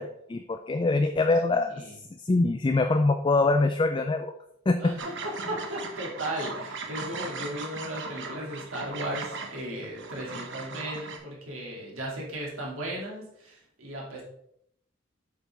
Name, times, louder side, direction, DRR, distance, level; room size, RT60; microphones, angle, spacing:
voice 1, 0.0-1.7 2.2-4.3 4.7-4.8, left 3 dB, 25° left, 6 dB, 0.3 m, -24 dB
voice 2, 1.5-2.0 4.8-14.2, right 1 dB, 85° right, -3 dB, 2.6 m, -36 dB
sound 1, 5.0-11.2, right 4 dB, 60° right, 1.0 m, -38 dB
8.2 x 5.6 x 3.6 m, 0.72 s
head